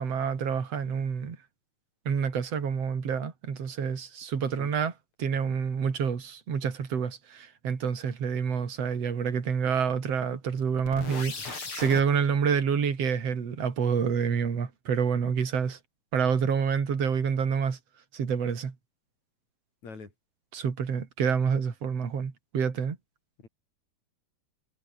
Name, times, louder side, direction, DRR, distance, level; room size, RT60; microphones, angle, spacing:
voice 1, 0.0-1.4 2.1-4.9 5.2-15.8 16.1-17.8 18.1-18.7 20.5-23.0, right 6 dB, 45° right, 3.9 m, -28 dB
sound 1, 10.8-12.0, left 4 dB, 40° left, 5.0 m, -37 dB
voice 2, 11.2-11.5 19.8-20.1 23.4-23.5, left 4 dB, 55° left, 6.3 m, -45 dB
omnidirectional pair, 4.0 m